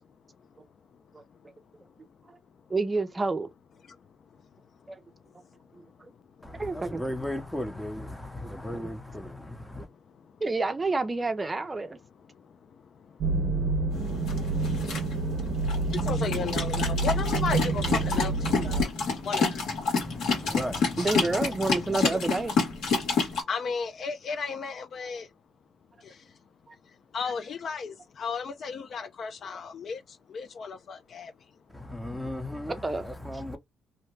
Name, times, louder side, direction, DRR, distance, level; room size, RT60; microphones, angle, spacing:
voice 1, 2.7-3.5 4.9-5.0 6.0-6.1 6.6-7.0 8.4-8.9 10.4-12.0 21.0-22.6 26.7-26.8 32.8-33.0, right 3 dB, 25° right, 0.5 m, -29 dB
voice 2, 6.4-9.9 19.9-21.0 21.3-21.4 31.7-33.6, left 1 dB, 10° left, 0.8 m, -36 dB
sound 1, 13.2-18.8, right 3 dB, 75° right, 0.5 m, -28 dB
sound 2, 13.9-23.4, left 4 dB, 80° left, 1.5 m, -29 dB
voice 3, 16.1-17.8 18.1-18.9 19.2-19.6 21.9-22.1 23.5-25.3 27.1-30.0 30.3-31.3, left 5 dB, 55° left, 0.4 m, -34 dB
2.7 x 2.1 x 3.1 m
cardioid pair, 90°, 0 cm